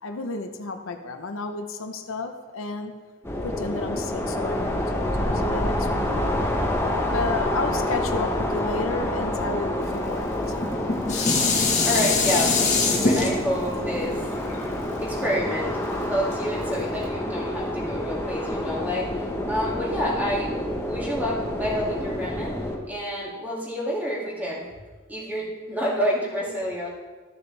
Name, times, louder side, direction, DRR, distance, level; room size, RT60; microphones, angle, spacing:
voice 1, 0.0-2.9 3.4-6.3 7.1-10.6, left 3 dB, 80° left, 6 dB, 0.8 m, -32 dB
sound 1, 3.2-22.8, left 1 dB, 10° left, 1.0 m, -28 dB
Dishes pots and pans, 10.5-15.8 16.3-16.4, left 3 dB, 35° left, 1.5 m, -24 dB
voice 2, 11.5-14.2 15.0-20.5 20.8-22.6 22.9-24.6 25.1-26.9, equal, 10° right, -5 dB, 2.3 m, -28 dB
13.5 x 6.8 x 3.3 m, 1.3 s
head